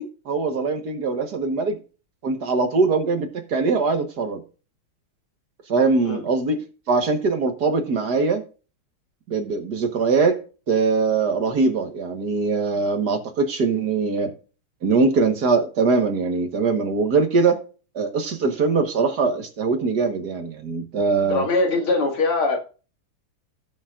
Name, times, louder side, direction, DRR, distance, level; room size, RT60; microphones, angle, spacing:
voice 1, 0.0-1.8 2.2-4.4 5.7-8.4 9.3-10.4 10.7-14.3 14.8-17.6 18.0-21.5, right 4 dB, 55° right, 6 dB, 1.8 m, -22 dB
voice 2, 21.3-22.6, left 3 dB, 90° left, 2 dB, 3.0 m, -22 dB
16.0 x 7.2 x 2.5 m, 0.34 s
omnidirectional pair, 2.3 m